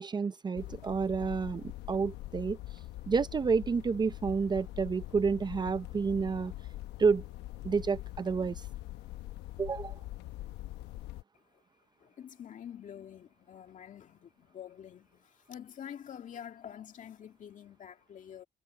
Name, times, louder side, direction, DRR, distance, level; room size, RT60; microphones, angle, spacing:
voice 1, 0.0-2.6 3.1-6.5 7.0-7.2 7.6-8.7 9.6-10.0, right 5 dB, 25° right, 0.6 m, -30 dB
sound 1, 0.6-11.2, left 16 dB, 90° left, 1.0 m, -43 dB
voice 2, 12.0-18.4, left 9 dB, 50° left, 2.3 m, -47 dB
cardioid pair, 110°, 17 cm